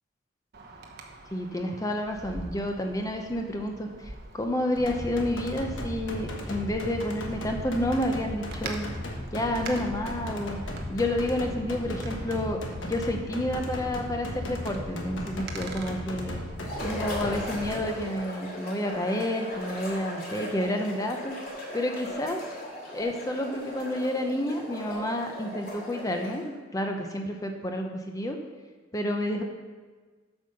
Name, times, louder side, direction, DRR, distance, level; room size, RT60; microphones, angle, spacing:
Wind, 0.5-16.6, right 2 dB, 55° right, 0.9 m, -44 dB
voice 1, 1.3-8.9 9.3-10.6 10.9-16.4 16.8-21.3 21.7-22.4 22.9-28.4 28.9-29.4, left 1 dB, 15° left, 3 dB, 0.6 m, -30 dB
sound 1, 4.8-17.8, left 1 dB, 75° left, 1.3 m, -36 dB
sound 2, 16.6-26.5, equal, 50° left, 2.3 m, -38 dB
7.9 x 5.4 x 6.5 m, 1.4 s
head